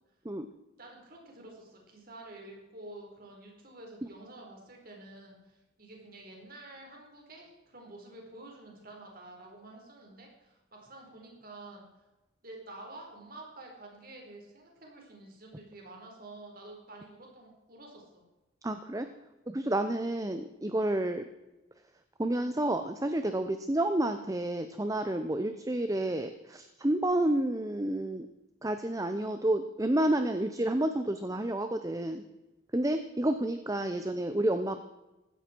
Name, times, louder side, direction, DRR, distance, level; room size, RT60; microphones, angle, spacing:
voice 1, 0.8-12.0 12.4-18.2 33.9-34.1, right 2 dB, 45° right, 0 dB, 4.5 m, -49 dB
voice 2, 18.6-19.1 19.5-21.2 22.2-28.3 28.6-32.2 32.7-34.8, right 1 dB, 15° right, 8 dB, 0.7 m, -30 dB
16.0 x 13.5 x 4.6 m, 1.0 s
head